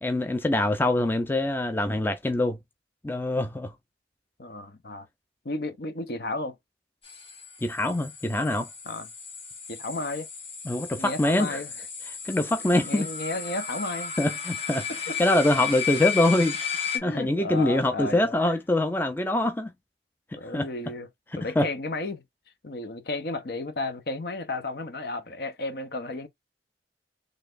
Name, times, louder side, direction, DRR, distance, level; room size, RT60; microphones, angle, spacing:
voice 1, 0.0-2.6 3.0-3.7 7.6-8.7 10.7-11.6 12.1-13.1 14.2-14.9 15.2-16.6 17.0-19.7 20.5-20.7 21.6-21.7, left 1 dB, 10° left, 0.4 m, -24 dB
voice 2, 4.4-5.1 5.4-6.6 8.9-9.1 9.7-10.3 11.0-11.7 12.6-14.1 15.1-15.2 16.9-18.6 20.4-21.1 21.4-22.2 22.6-26.3, left 2 dB, 60° left, 0.7 m, -33 dB
sound 1, 7.0-17.0, left 7 dB, 35° left, 1.5 m, -34 dB
4.0 x 3.3 x 2.5 m
head